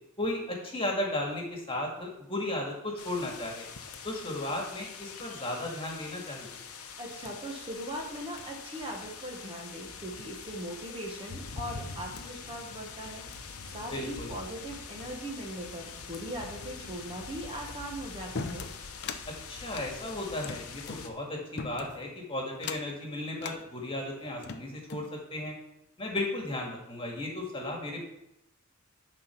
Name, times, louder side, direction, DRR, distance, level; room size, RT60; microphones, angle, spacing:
voice 1, 0.2-3.7 4.0-6.6 13.9-14.3 19.3-25.5 26.0-28.0, left 1 dB, 25° left, -1 dB, 1.9 m, -35 dB
sound 1, 3.0-21.1, left 5 dB, 85° left, 0.9 m, -44 dB
voice 2, 7.0-13.2 13.7-18.7, right 1 dB, 25° right, -1 dB, 1.3 m, -40 dB
sound 2, 18.4-19.2 19.7-21.0 21.6-22.1 22.6-23.0 23.4-23.6 24.2-25.1, left 4 dB, 50° left, 0.6 m, -39 dB
10.0 x 4.3 x 5.9 m, 0.82 s
head